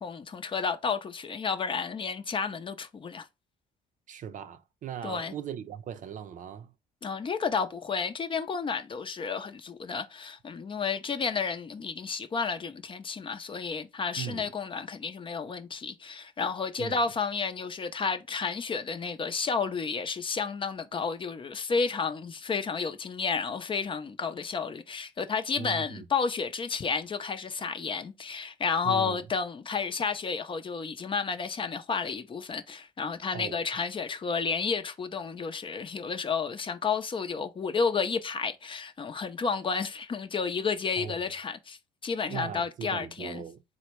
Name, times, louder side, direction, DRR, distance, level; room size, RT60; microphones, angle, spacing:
voice 1, 0.0-3.3 5.0-5.3 7.0-43.4, left 5 dB, 30° left, 0.6 m, -31 dB
voice 2, 4.1-6.7 14.2-14.5 16.8-17.0 25.6-26.1 28.8-29.2 33.3-33.6 41.0-41.3 42.3-43.6, right 8 dB, 50° right, 0.5 m, -39 dB
3.9 x 2.1 x 4.5 m
cardioid pair, 110°, 17 cm